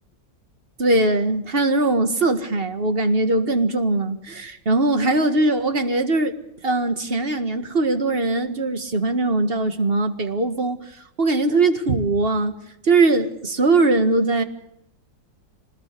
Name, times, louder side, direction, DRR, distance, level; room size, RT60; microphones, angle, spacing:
voice 1, 0.8-6.3 6.6-10.8 11.2-12.6 12.8-14.4, right 2 dB, 30° right, 1.9 m, -20 dB
25.5 x 20.5 x 6.7 m
omnidirectional pair, 2.0 m